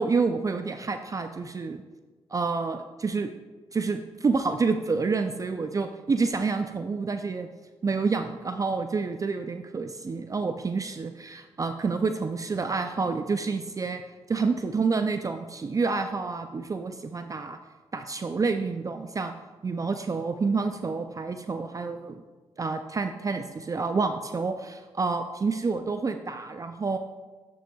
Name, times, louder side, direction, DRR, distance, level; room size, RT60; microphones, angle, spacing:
voice 1, 0.0-1.8 2.3-3.3 3.7-7.5 7.8-14.0 14.3-17.6 17.9-19.3 19.6-22.2 22.6-27.0, right 4 dB, 35° right, 7 dB, 0.4 m, -28 dB
9.0 x 6.9 x 2.3 m, 1.3 s
supercardioid pair, 60°, 10 cm